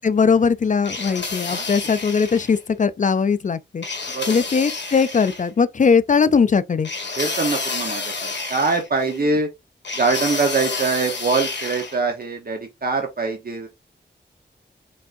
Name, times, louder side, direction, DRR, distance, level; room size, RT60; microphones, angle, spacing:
voice 1, 0.0-3.8 4.3-6.9, left 5 dB, 45° left, 0.4 m, -19 dB
sound 1, 0.8-2.6 3.8-5.5 6.8-9.2 9.8-12.0, left 4 dB, 75° left, 1.8 m, -29 dB
voice 2, 1.4-1.8 4.1-4.5 7.2-9.5 9.9-13.7, right 4 dB, 55° right, 1.0 m, -23 dB
5.3 x 3.5 x 2.6 m
wide cardioid pair, 95°, 19 cm